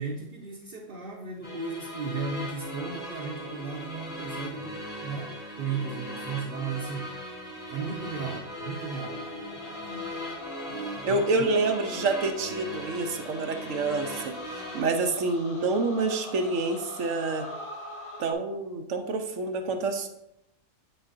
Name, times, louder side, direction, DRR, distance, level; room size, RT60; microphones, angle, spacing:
voice 1, 0.0-7.1 7.7-10.1 10.7-11.4, right 5 dB, 50° right, -2 dB, 0.9 m, -36 dB
sound 1, 1.4-14.8, left 1 dB, 75° left, 3.0 m, -38 dB
sound 2, 8.8-18.3, left 1 dB, 30° left, 0.8 m, -44 dB
voice 2, 11.0-17.5 18.2-20.1, right 3 dB, 85° right, 5 dB, 1.2 m, -28 dB
7.9 x 6.6 x 2.6 m, 0.84 s
omnidirectional pair, 1.3 m